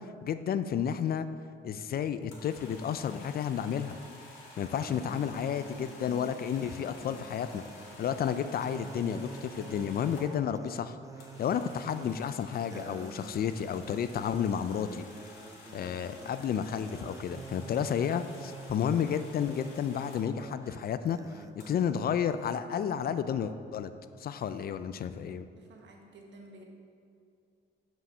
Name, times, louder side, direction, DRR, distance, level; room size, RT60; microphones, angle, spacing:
voice 1, 0.2-1.3 1.6-4.0 4.6-7.6 8.0-11.0 11.4-15.0 15.7-23.9 24.2-25.5, left 8 dB, 50° left, 11 dB, 0.4 m, -31 dB
sound 1, 2.2-10.3 11.2-20.2 21.6-21.7, left 2 dB, 80° left, 1.7 m, -51 dB
sound 2, 4.7-22.0, right 3 dB, 15° right, 0.4 m, -47 dB
voice 2, 25.3-26.6, right 2 dB, 65° right, 1 dB, 1.2 m, -53 dB
5.6 x 4.9 x 6.5 m, 2.4 s
cardioid pair, 90°, 20 cm